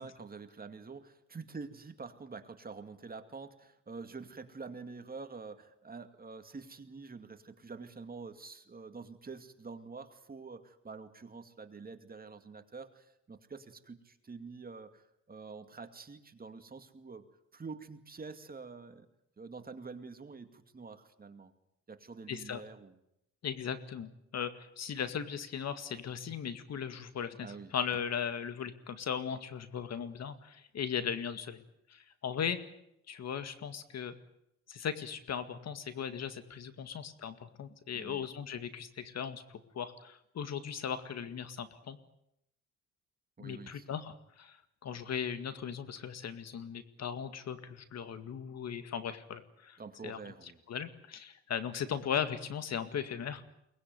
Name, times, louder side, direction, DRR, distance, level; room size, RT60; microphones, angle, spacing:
voice 1, 0.0-17.3 17.5-19.1 19.4-21.5 21.9-23.0 27.4-27.7 37.9-38.3 43.4-43.9 49.8-50.6, right 4 dB, 30° right, 8 dB, 2.4 m, -47 dB
voice 2, 22.3-22.6 23.4-31.6 31.9-32.6 33.1-34.1 34.7-42.0 43.4-49.8 50.0-50.2 50.7-53.4, left 8 dB, 60° left, 11 dB, 2.1 m, -38 dB
23.0 x 20.0 x 9.5 m, 0.79 s
cardioid pair, 90°, 30 cm